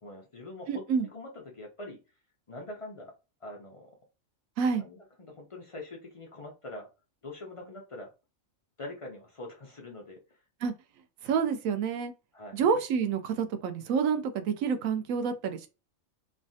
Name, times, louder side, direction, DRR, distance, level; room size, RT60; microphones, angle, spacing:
voice 1, 0.0-2.0 2.5-3.1 3.4-4.0 4.8-6.9 7.2-8.1 8.8-10.4 12.3-12.6, left 2 dB, 55° left, 0.3 m, -44 dB
voice 2, 0.7-1.1 4.6-4.8 10.6-10.7 11.2-12.1 12.5-15.7, right 6 dB, 85° right, 1.0 m, -28 dB
3.2 x 2.2 x 2.6 m
omnidirectional pair, 1.4 m